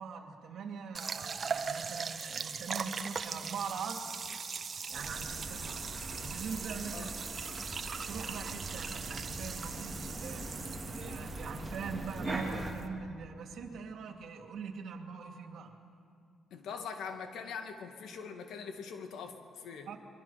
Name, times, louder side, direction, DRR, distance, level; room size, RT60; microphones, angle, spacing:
voice 1, 0.0-4.2 4.9-5.8 6.2-7.1 7.9-10.5 10.8-15.7 19.9-20.0, right 5 dB, 70° right, 4 dB, 2.6 m, -42 dB
sound 1, 0.9-12.9, right 5 dB, 45° right, 1.2 m, -40 dB
sound 2, 4.9-12.7, right 1 dB, 5° right, 3.8 m, -42 dB
voice 2, 16.5-19.9, left 6 dB, 75° left, 6 dB, 2.2 m, -42 dB
27.0 x 22.5 x 5.9 m, 2.6 s
cardioid pair, 90°, 0 cm